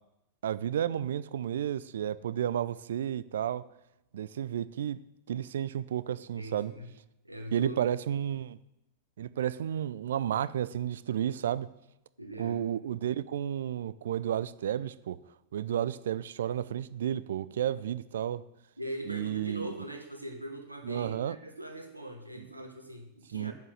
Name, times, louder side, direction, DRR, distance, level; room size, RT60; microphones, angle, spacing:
voice 1, 0.4-3.6 4.1-5.0 5.3-6.7 7.5-8.6 9.2-11.7 12.4-15.2 15.5-18.4 19.1-19.7 20.9-21.4 22.4-22.5 23.3-23.5, right 10 dB, 60° right, 17 dB, 0.4 m, -32 dB
voice 2, 6.4-6.9 7.2-7.8 12.2-12.6 18.8-23.5, right 1 dB, 85° right, 4 dB, 1.3 m, -41 dB
7.4 x 7.3 x 7.8 m, 0.89 s
figure-of-eight pair, 90°, 0 cm